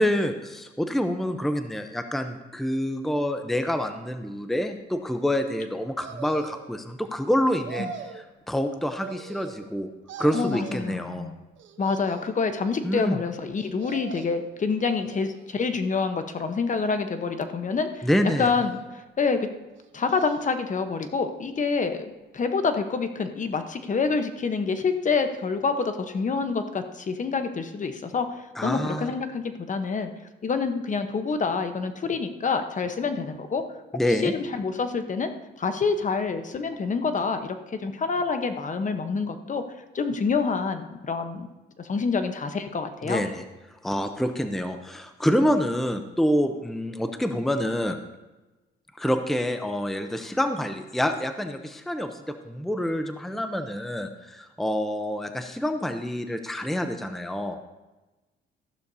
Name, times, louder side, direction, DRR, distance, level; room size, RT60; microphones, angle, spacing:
voice 1, 0.0-9.9 10.2-11.3 12.8-13.2 18.0-18.5 28.6-29.1 33.9-34.3 43.0-43.4 43.8-48.0 49.0-57.6, equal, ahead, 7 dB, 0.7 m, -27 dB
sound 1, 6.0-6.8 7.4-8.3 9.0-9.8 10.1-10.9 11.6-12.4 13.6-14.5 15.0-15.7 16.4-17.1 18.2-19.0 19.7-20.6 21.0-21.1, right 8 dB, 75° right, 0.9 m, -43 dB
voice 2, 10.3-11.4 11.8-18.1 18.4-18.8 19.2-19.5 19.9-28.3 28.6-30.1 30.4-33.6 34.1-35.3 35.6-37.6 37.8-39.6 39.9-41.5 41.8-43.2, left 4 dB, 40° left, 8 dB, 1.0 m, -27 dB
14.0 x 11.5 x 2.7 m, 1.1 s
cardioid pair, 90°, 20 cm